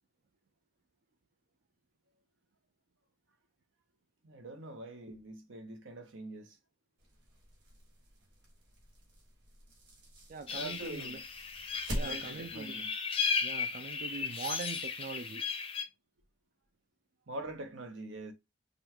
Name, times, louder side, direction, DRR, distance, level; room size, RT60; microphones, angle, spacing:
voice 1, 4.2-6.6 10.5-11.2 12.0-12.9 17.3-18.3, right 2 dB, 85° right, 0.9 m, -44 dB
sound 1, 7.0-12.6, equal, 65° right, 1.9 m, -44 dB
voice 2, 10.3-11.2 11.9-12.8 13.4-15.5, right 4 dB, 45° right, 0.3 m, -42 dB
sound 2, 10.5-15.8, left 5 dB, 30° left, 0.6 m, -35 dB
5.2 x 2.3 x 2.9 m
head